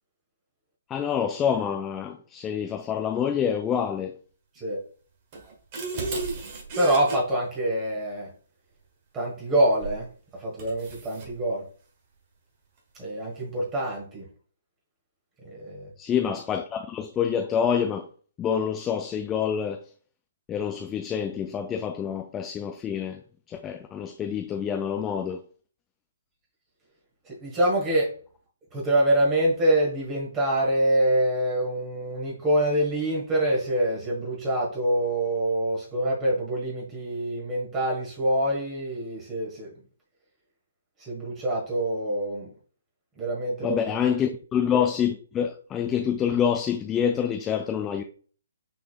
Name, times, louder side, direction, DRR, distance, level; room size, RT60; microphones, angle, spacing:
voice 1, 0.9-4.1 16.0-18.1 18.4-19.8 20.5-23.2 23.5-25.4 43.6-48.0, left 8 dB, 15° left, 0.4 m, -27 dB
sound 1, 5.3-7.2 9.8-10.0 10.6-11.3, right 3 dB, 35° right, 1.4 m, -33 dB
voice 2, 6.8-8.3 9.1-11.7 13.0-14.3 15.4-15.9 27.2-28.1 28.7-39.7 41.0-42.5 43.2-43.8, right 1 dB, 20° right, 1.4 m, -25 dB
5.8 x 4.0 x 2.3 m
figure-of-eight pair, 130°, 0 cm